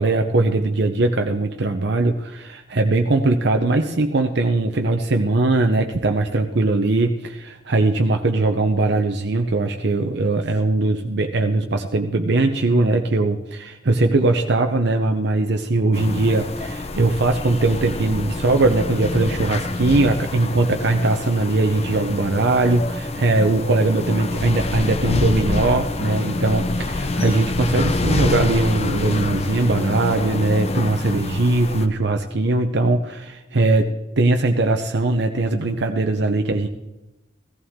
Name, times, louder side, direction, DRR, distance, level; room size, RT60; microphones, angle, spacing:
voice 1, 0.0-36.7, right 2 dB, 60° right, 4 dB, 0.7 m, -20 dB
sound 1, 15.9-31.9, left 2 dB, 35° left, 0.8 m, -26 dB
16.0 x 14.5 x 3.7 m, 0.99 s
head